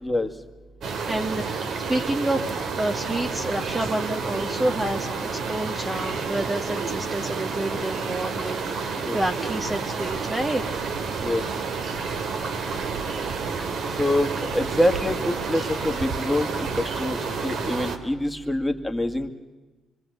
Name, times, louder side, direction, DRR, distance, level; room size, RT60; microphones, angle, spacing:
sound 1, 0.8-18.0, right 5 dB, 65° right, 2.5 m, -30 dB
voice 1, 1.1-10.6, right 1 dB, 15° right, 5 dB, 1.3 m, -29 dB
voice 2, 14.0-19.3, left 1 dB, 5° left, 5 dB, 1.9 m, -25 dB
25.5 x 24.5 x 8.1 m, 1.2 s
cardioid pair, 90°, 0 cm